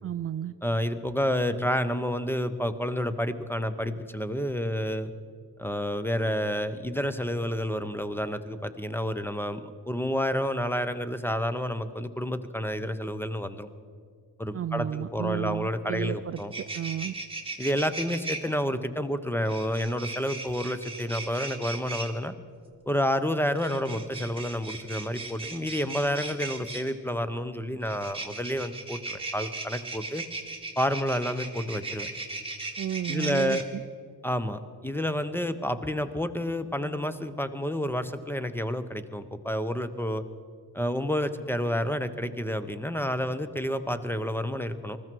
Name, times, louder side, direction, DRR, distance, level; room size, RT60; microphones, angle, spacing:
voice 1, 0.0-0.5 14.5-16.4 16.7-17.1 32.8-33.8, right 10 dB, 35° right, 12 dB, 0.4 m, -32 dB
voice 2, 0.6-5.1 5.6-13.7 14.4-16.5 17.6-22.3 22.9-30.2 30.8-32.1 33.1-33.6 34.2-40.2 40.7-45.0, equal, 5° left, 12 dB, 0.8 m, -29 dB
sound 1, 16.0-16.1 16.3-18.4 19.5-22.1 23.5-26.9 27.8-33.6, right 2 dB, 15° right, 2.1 m, -37 dB
20.0 x 14.0 x 4.7 m, 2.1 s
supercardioid pair, 65°, 42 cm